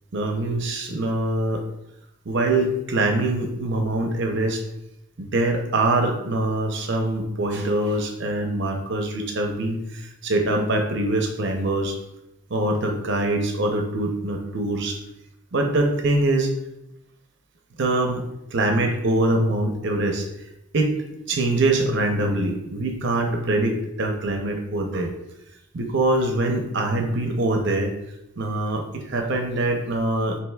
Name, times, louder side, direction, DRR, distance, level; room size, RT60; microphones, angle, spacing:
voice 1, 0.1-1.6 2.3-4.6 5.2-12.0 12.5-15.0 15.5-16.5 17.8-18.2 18.5-20.3 20.7-21.0 21.3-25.1 25.7-27.9 28.4-30.4, right 2 dB, 60° right, 3 dB, 0.7 m, -23 dB
7.5 x 3.0 x 2.3 m, 0.87 s
head